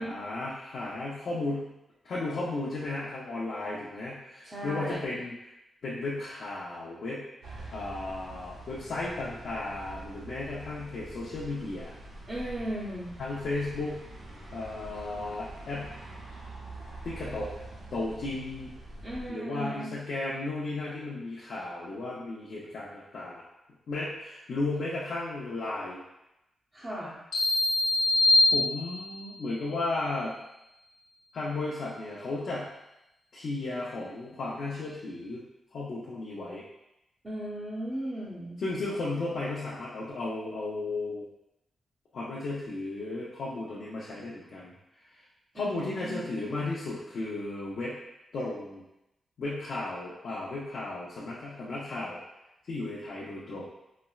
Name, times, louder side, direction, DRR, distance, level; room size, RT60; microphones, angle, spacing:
voice 1, 0.0-1.7 2.0-5.3 5.8-7.3 7.7-11.9 13.2-14.0 14.5-15.9 17.0-17.5 17.9-18.7 19.3-23.4 23.9-26.0 28.5-30.3 31.3-32.7 33.3-35.4 35.7-36.6 38.6-41.2 42.1-44.7 45.5-48.0 48.3-48.8 49.4-52.2 52.7-53.7, left 2 dB, 55° left, -8 dB, 0.6 m, -34 dB
voice 2, 4.4-5.1 12.3-13.1 19.0-19.9 26.7-27.2 37.2-38.6 45.5-46.7, right 1 dB, 20° right, -10 dB, 0.6 m, -36 dB
sound 1, 7.4-19.3, right 2 dB, 75° right, 0.7 m, -45 dB
sound 2, 27.3-29.3, left 2 dB, 80° left, 0.9 m, -23 dB
4.1 x 2.1 x 2.3 m, 0.88 s
wide cardioid pair, 180°, 0 cm